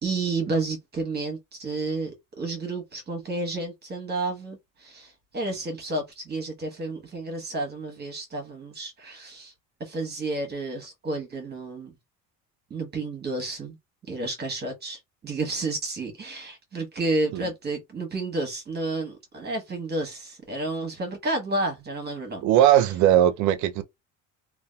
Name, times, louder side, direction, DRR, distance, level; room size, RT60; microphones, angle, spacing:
voice 1, 0.0-9.5 9.8-12.0 12.7-13.8 14.1-22.4 22.7-22.8, right 2 dB, 30° right, 0.9 m, -31 dB
voice 2, 22.4-23.8, right 11 dB, 65° right, 0.5 m, -19 dB
2.7 x 2.2 x 2.2 m
cardioid pair, 100°, 32 cm